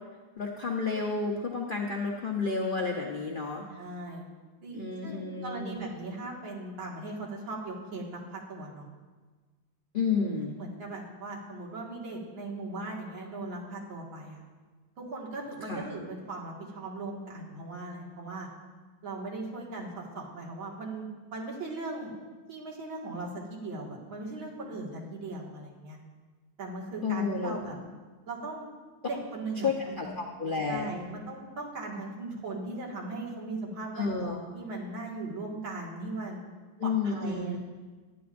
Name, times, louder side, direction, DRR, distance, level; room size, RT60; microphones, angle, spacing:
voice 1, 0.4-3.6 4.7-5.8 9.9-10.5 15.7-15.9 27.0-27.6 29.6-30.9 33.9-34.4 36.8-37.6, left 4 dB, 50° left, 0 dB, 0.6 m, -31 dB
voice 2, 3.7-4.2 4.6-8.9 10.6-14.4 15.0-18.5 19.0-22.1 22.5-26.0 26.6-27.8 28.3-28.7 29.0-30.1 30.7-36.4 36.8-37.6, right 2 dB, 75° right, -3 dB, 2.7 m, -38 dB
16.0 x 12.0 x 2.6 m, 1.3 s
omnidirectional pair, 2.2 m